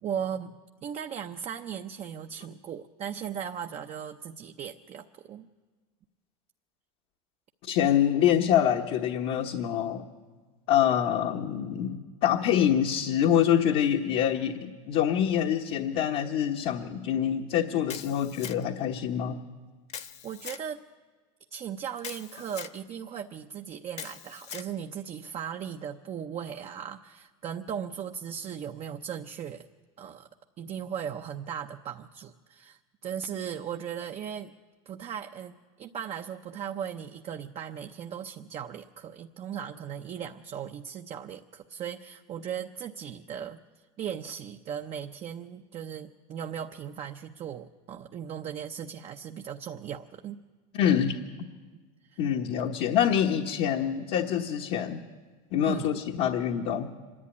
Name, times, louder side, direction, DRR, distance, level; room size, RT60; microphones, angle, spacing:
voice 1, 0.0-5.5 20.2-20.8 21.5-29.7 30.0-30.3 30.6-34.5 34.9-43.6 44.0-50.4 52.0-52.3 55.7-55.9, right 8 dB, 35° right, 5 dB, 0.7 m, -37 dB
voice 2, 7.6-10.0 10.7-19.4 50.7-51.2 52.2-55.0 55.5-56.9, left 9 dB, 55° left, 2 dB, 1.2 m, -25 dB
Camera, 17.9-18.8 19.9-20.7 22.0-22.8 23.9-24.7, left 8 dB, 35° left, 1.0 m, -41 dB
25.0 x 11.0 x 9.8 m, 1.4 s
supercardioid pair, 120°, 19 cm